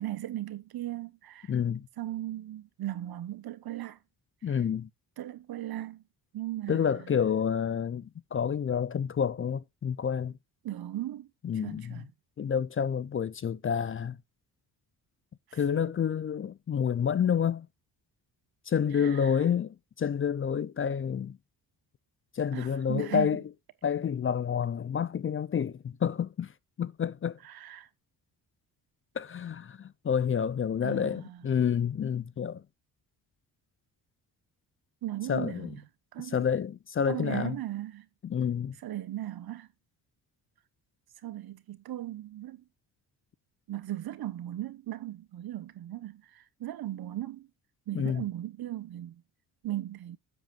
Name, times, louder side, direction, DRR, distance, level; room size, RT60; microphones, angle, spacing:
voice 1, 0.0-1.5 2.0-4.0 4.5-4.6 5.2-6.0 6.3-7.3 10.6-12.1 15.5-15.6 18.9-19.4 22.5-23.4 27.4-27.9 30.8-31.5 35.0-35.8 36.1-36.4 37.0-38.1 38.8-39.7 41.2-42.6 43.7-47.5 47.9-49.2 49.6-50.2, right 14 dB, 65° right, 1.2 m, -37 dB
voice 2, 1.5-1.9 4.4-4.9 6.7-10.4 11.4-12.0 12.4-14.2 15.5-17.7 18.7-21.4 22.3-23.4 23.8-26.5 26.8-27.4 29.2-32.6 35.3-35.7 36.3-37.5 38.2-38.8 47.9-48.2, left 7 dB, 35° left, 0.5 m, -29 dB
10.5 x 7.7 x 2.5 m
cardioid pair, 80°, 39 cm